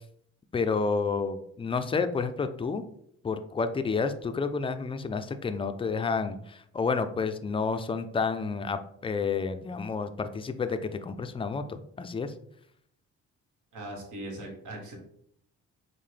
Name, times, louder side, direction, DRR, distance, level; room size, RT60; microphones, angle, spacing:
voice 1, 0.5-2.8 3.2-12.3, left 4 dB, 20° left, 9 dB, 0.3 m, -30 dB
voice 2, 13.7-15.0, right 1 dB, 75° right, 0 dB, 1.3 m, -39 dB
5.5 x 2.1 x 3.2 m, 0.69 s
cardioid pair, 90°, 30 cm